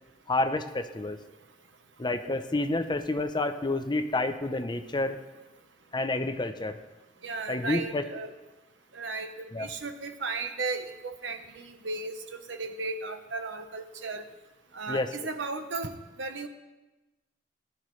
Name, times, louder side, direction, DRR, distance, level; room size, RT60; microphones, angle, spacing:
voice 1, 0.3-1.2 2.0-5.2 5.9-6.8 7.5-8.0 9.5-9.7 14.9-15.1, left 2 dB, 25° left, 9 dB, 0.7 m, -29 dB
voice 2, 7.2-8.3 8.9-14.3 14.7-16.5, right 3 dB, 80° right, 7 dB, 1.1 m, -35 dB
19.0 x 11.5 x 3.2 m, 1.1 s
head